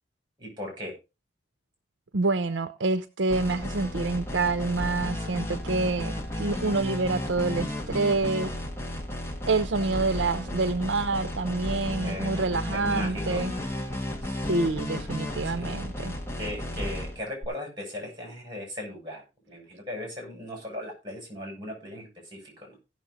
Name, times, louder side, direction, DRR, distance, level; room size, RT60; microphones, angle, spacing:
voice 1, 0.4-1.0 9.8-10.1 12.0-12.3 12.7-13.4 15.5-15.8 16.4-19.2 19.5-22.8, left 1 dB, 25° right, 6.9 m, -37 dB
voice 2, 2.1-8.5 9.5-13.5 14.4-16.1, right 3 dB, 70° right, 0.7 m, -27 dB
sound 1, 3.3-17.5, left 1 dB, 15° left, 1.6 m, -33 dB
16.5 x 6.5 x 3.9 m
head